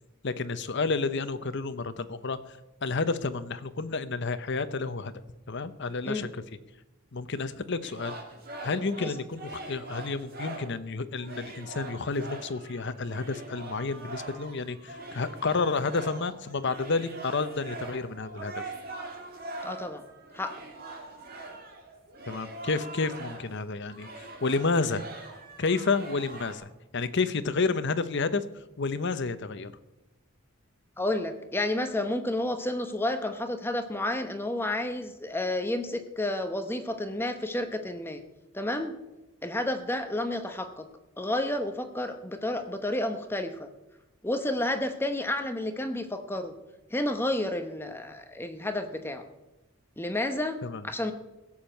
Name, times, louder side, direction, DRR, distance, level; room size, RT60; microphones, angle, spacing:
voice 1, 0.2-5.1 5.5-6.4 7.1-8.2 8.6-18.6 22.3-25.0 25.6-28.4 28.8-29.7 50.6-50.8, left 4 dB, 55° left, 12 dB, 0.8 m, -30 dB
sound 1, 7.8-10.8 11.2-23.6 23.9-26.5, right 2 dB, 45° right, 2.6 m, -42 dB
voice 2, 19.6-20.0 20.3-20.5 31.0-38.2 38.5-38.9 39.4-40.8 41.2-43.7 44.2-46.5 46.9-49.2 50.0-50.6 50.8-51.1, left 1 dB, 10° left, 7 dB, 0.9 m, -30 dB
16.5 x 7.2 x 7.8 m, 0.99 s
head